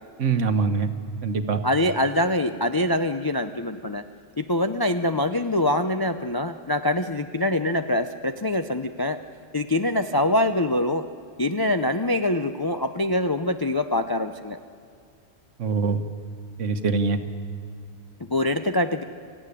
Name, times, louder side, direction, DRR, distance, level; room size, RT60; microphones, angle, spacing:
voice 1, 0.2-0.9 1.2-1.6 15.6-16.0 16.6-17.2, right 5 dB, 70° right, 8 dB, 1.5 m, -23 dB
voice 2, 1.6-4.0 4.4-9.2 9.5-11.1 11.4-14.6 18.3-19.0, left 1 dB, 30° left, 7 dB, 0.4 m, -24 dB
25.5 x 15.0 x 9.9 m, 2.2 s
omnidirectional pair, 1.3 m